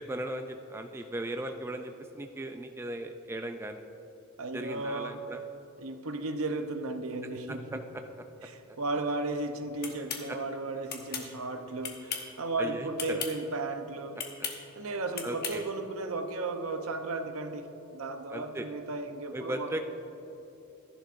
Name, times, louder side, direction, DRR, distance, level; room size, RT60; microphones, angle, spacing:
voice 1, 0.0-3.9 4.5-5.4 7.5-8.0 8.4-8.8 10.3-10.4 12.6-13.2 15.2-15.6 18.3-18.7 19.3-19.8, right 1 dB, 10° right, 6 dB, 0.3 m, -37 dB
voice 2, 4.4-5.3 5.8-7.8 8.4-14.2 14.8-19.8, right 2 dB, 75° right, 7 dB, 0.8 m, -35 dB
sound 1, 9.8-10.2 10.9-11.3 11.8-12.3 12.9-13.3 14.2-14.6 15.1-15.6, left 7 dB, 50° left, 1.1 m, -36 dB
13.5 x 11.0 x 2.6 m, 3.0 s
head